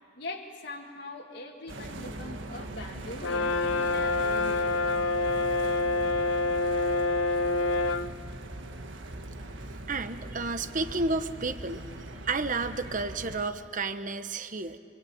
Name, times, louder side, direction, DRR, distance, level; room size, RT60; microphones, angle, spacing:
voice 1, 0.2-4.9 7.2-7.7 10.7-10.8, left 2 dB, 55° left, -2 dB, 1.8 m, -42 dB
sound 1, 1.7-13.4, right 1 dB, 70° right, 1.6 m, -41 dB
Brass instrument, 3.2-8.1, left 2 dB, 85° left, 0.8 m, -27 dB
voice 2, 9.9-11.9 12.2-14.8, right 3 dB, 40° right, 10 dB, 1.1 m, -31 dB
26.5 x 25.5 x 8.8 m, 2.4 s
head